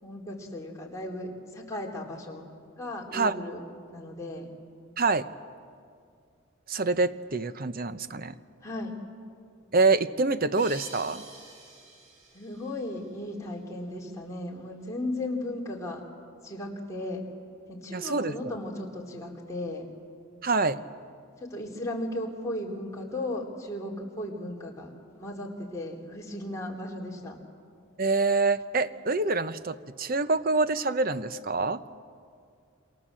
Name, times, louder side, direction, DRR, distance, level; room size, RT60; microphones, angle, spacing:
voice 1, 0.0-2.4 2.8-3.6 3.9-4.5 8.6-9.0 12.3-16.0 16.4-17.2 17.7-19.9 21.4-27.4, left 1 dB, 15° left, -2 dB, 3.6 m, -36 dB
voice 2, 5.0-5.3 6.7-8.4 9.7-11.2 17.9-18.3 20.4-20.8 28.0-31.8, right 3 dB, 45° right, 12 dB, 0.8 m, -26 dB
sound 1, 10.5-13.6, right 2 dB, 85° right, 7.3 m, -48 dB
28.5 x 26.0 x 7.6 m, 2.3 s
head